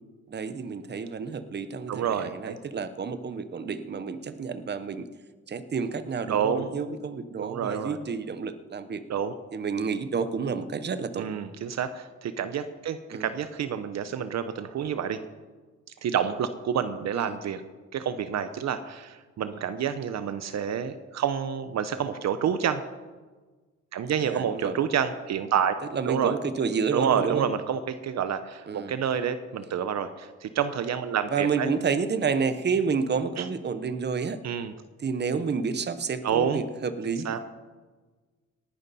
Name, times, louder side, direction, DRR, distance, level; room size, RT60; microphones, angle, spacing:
voice 1, 0.3-5.1 5.5-9.0 9.5-11.3 13.1-13.3 17.1-17.4 24.2-24.8 25.9-27.5 28.7-29.0 31.3-34.4 35.0-37.4, right 5 dB, 35° right, 11 dB, 1.0 m, -30 dB
voice 2, 1.9-2.6 6.3-6.7 7.4-8.0 9.1-9.3 11.1-15.2 16.0-17.6 17.9-22.8 23.9-25.7 26.1-26.3 26.9-31.7 33.4-33.5 34.4-34.7 36.2-36.6 37.2-37.4, right 8 dB, 60° right, 11 dB, 0.9 m, -28 dB
18.5 x 11.0 x 4.2 m, 1.3 s
cardioid pair, 90°, 30 cm